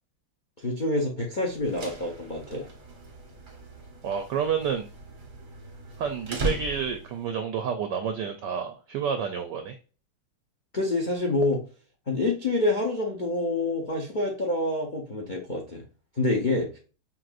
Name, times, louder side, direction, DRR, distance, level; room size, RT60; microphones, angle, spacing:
voice 1, 0.6-2.7 10.7-11.6 12.1-15.8 16.2-16.8, left 2 dB, 70° left, 1 dB, 0.4 m, -27 dB
sound 1, 1.5-7.2, right 1 dB, 40° right, 0.7 m, -37 dB
voice 2, 4.0-4.9 6.0-9.8, right 7 dB, 75° right, 7 dB, 1.0 m, -29 dB
5.7 x 2.6 x 2.5 m, 0.37 s
omnidirectional pair, 2.3 m